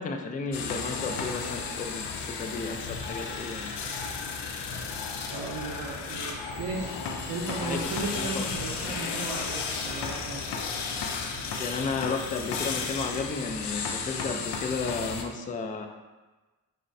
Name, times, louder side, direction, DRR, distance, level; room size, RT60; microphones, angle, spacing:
voice 1, 0.0-3.8 7.6-7.8 8.2-8.4 11.6-15.9, left 4 dB, 20° left, 5 dB, 0.3 m, -33 dB
sound 1, 0.5-15.2, left 5 dB, 75° left, 0.5 m, -34 dB
voice 2, 5.3-7.0 7.3-10.5, right 3 dB, 85° right, -4 dB, 0.5 m, -35 dB
5.1 x 2.1 x 2.5 m, 1.2 s
cardioid pair, 45°, 41 cm